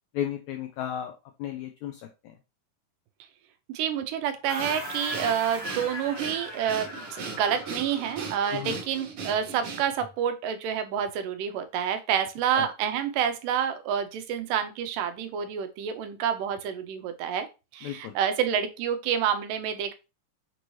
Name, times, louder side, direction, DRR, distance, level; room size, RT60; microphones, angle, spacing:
voice 1, 0.1-1.1 1.4-2.3 8.5-8.8 12.5-12.7 17.8-18.1, left 11 dB, 90° left, 5 dB, 1.6 m, -34 dB
voice 2, 3.7-17.5 17.7-19.9, right 8 dB, 85° right, 8 dB, 2.1 m, -28 dB
sound 1, 4.5-8.9, left 1 dB, 15° left, 0.5 m, -39 dB
Breathing, 4.6-10.1, right 5 dB, 65° right, 1.5 m, -38 dB
6.1 x 2.7 x 3.0 m, 0.28 s
omnidirectional pair, 3.8 m